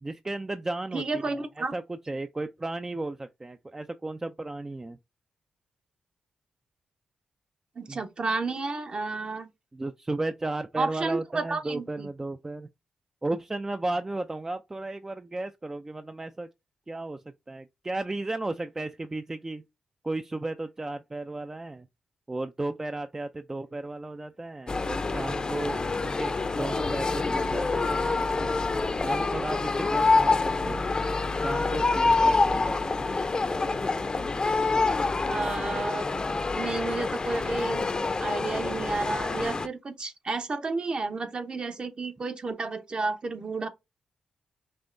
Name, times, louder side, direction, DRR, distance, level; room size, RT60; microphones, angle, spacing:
voice 1, 0.0-1.2 1.6-5.0 7.9-8.0 9.7-12.7 13.2-16.5 16.9-19.6 20.0-21.9 22.3-26.3 26.6-28.5 29.0-30.9 31.4-33.1, right 2 dB, 25° right, 0.4 m, -34 dB
voice 2, 0.9-1.7 7.8-9.5 10.8-12.1 35.3-36.1 36.5-37.9 38.2-43.7, right 3 dB, 45° right, 0.9 m, -31 dB
sound 1, 24.7-39.7, left 3 dB, 35° left, 0.6 m, -26 dB
5.4 x 2.9 x 2.6 m
cardioid pair, 55°, 2 cm